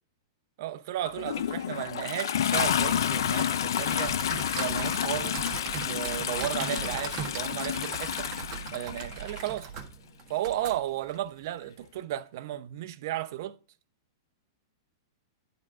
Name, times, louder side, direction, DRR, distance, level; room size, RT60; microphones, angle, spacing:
voice 1, 0.6-4.2 4.6-5.5 5.8-8.3 8.7-9.7 10.3-13.6, right 12 dB, 50° right, 0.7 m, -34 dB
Toilet flush, 1.0-9.5 10.5-10.6, left 9 dB, 75° left, 0.5 m, -30 dB
sound 1, 4.0-11.2, right 6 dB, 30° right, 1.5 m, -39 dB
10.5 x 3.7 x 4.8 m
supercardioid pair, 160°, 2 cm